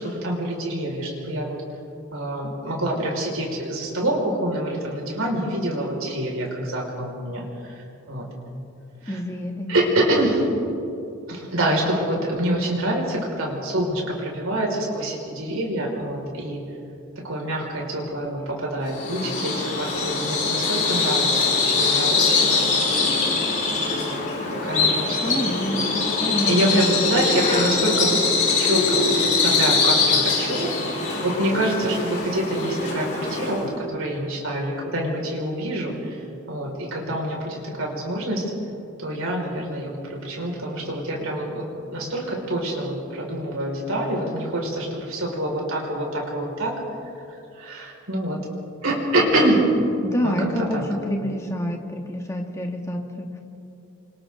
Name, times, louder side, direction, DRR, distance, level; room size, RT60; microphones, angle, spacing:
voice 1, 0.0-1.6 2.1-7.4 8.1-8.3 9.7-10.5 11.3-16.6 17.2-22.7 23.0-23.1 24.0-24.2 24.5-25.4 26.5-28.2 28.6-30.7 31.0-36.0 36.5-38.5 39.0-41.7 41.9-46.7 47.6-48.4 48.8-49.7 50.2-50.3 50.7-50.9, right 1 dB, 85° right, -2 dB, 5.4 m, -26 dB
voice 2, 9.1-9.7 25.2-26.9 50.0-53.3, equal, 15° left, 1 dB, 1.9 m, -27 dB
Bird vocalization bird call bird song, 18.9-33.7, left 4 dB, 40° left, 5.6 m, -22 dB
28.5 x 25.5 x 3.9 m, 2.7 s
head